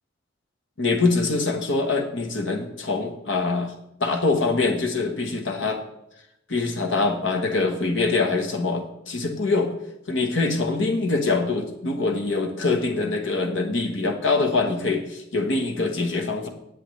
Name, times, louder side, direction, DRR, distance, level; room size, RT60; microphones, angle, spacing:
voice 1, 0.8-3.7 4.0-5.8 6.5-9.7 10.1-16.5, left 3 dB, 75° left, 5 dB, 1.3 m, -24 dB
18.5 x 7.7 x 3.2 m, 0.82 s
head